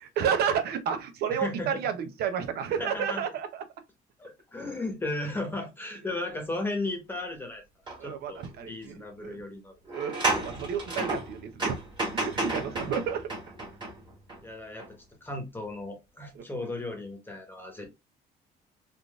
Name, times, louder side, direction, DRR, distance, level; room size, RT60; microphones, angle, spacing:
voice 1, 0.0-3.6 8.0-9.4 9.9-10.2 10.4-11.8 12.1-13.3 16.3-16.7, right 7 dB, 70° right, 0.7 m, -31 dB
voice 2, 1.3-1.7 2.8-3.2 4.2-7.6 8.0-8.4 8.7-9.7 12.7-12.9 14.4-14.8 15.2-17.9, left 2 dB, 10° left, 1.0 m, -35 dB
sound 1, 7.9-8.0 8.4-8.5 9.8-14.4 14.8-14.9, right 2 dB, 25° right, 1.7 m, -32 dB
3.6 x 2.5 x 2.3 m
cardioid pair, 110°, 17 cm